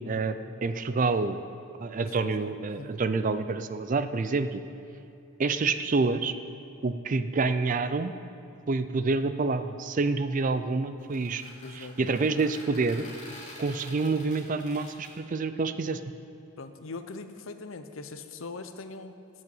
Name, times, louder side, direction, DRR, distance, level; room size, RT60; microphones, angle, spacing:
voice 1, 0.0-1.4 1.8-4.6 5.4-6.3 6.8-8.1 8.7-11.4 11.7-13.1 13.6-16.0, right 3 dB, 40° right, 11 dB, 0.4 m, -28 dB
voice 2, 2.2-2.9 11.6-12.0 16.6-19.2, left 3 dB, 75° left, 9 dB, 0.7 m, -41 dB
sound 1, 11.0-15.1, left 1 dB, 35° left, 3.1 m, -47 dB
12.0 x 6.4 x 7.7 m, 2.8 s
head